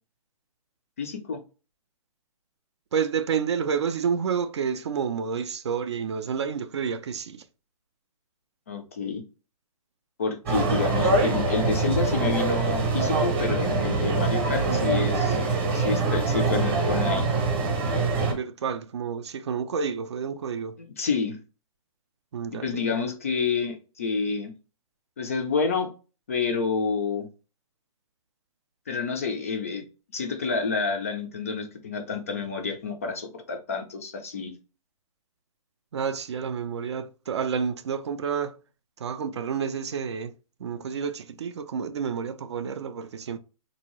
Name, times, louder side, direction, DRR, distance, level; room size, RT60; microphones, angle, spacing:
voice 1, 1.0-1.4 8.7-9.2 10.2-15.4 15.7-17.3 20.8-21.4 22.6-24.5 25.2-25.9 26.3-27.3 28.9-29.8 30.1-34.5, left 5 dB, 25° left, 0.3 m, -29 dB
voice 2, 2.9-7.4 14.7-15.0 18.3-20.8 22.3-22.8 35.9-38.6 39.0-40.3 40.6-43.4, right 6 dB, 50° right, 0.4 m, -29 dB
sound 1, 10.5-18.3, right 3 dB, 20° right, 0.8 m, -24 dB
3.8 x 2.7 x 2.9 m
hypercardioid pair, 170°, 19 cm